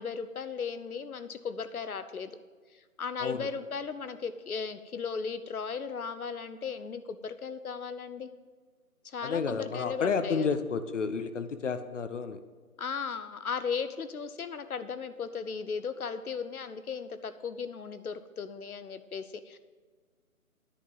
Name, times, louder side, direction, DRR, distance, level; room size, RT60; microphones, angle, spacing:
voice 1, 0.0-2.3 3.0-8.3 9.0-10.5 12.8-19.6, left 5 dB, 75° left, 12 dB, 1.0 m, -36 dB
voice 2, 9.2-12.4, left 5 dB, 55° left, 10 dB, 0.7 m, -31 dB
9.9 x 6.0 x 7.0 m, 1.5 s
figure-of-eight pair, 150°, 44 cm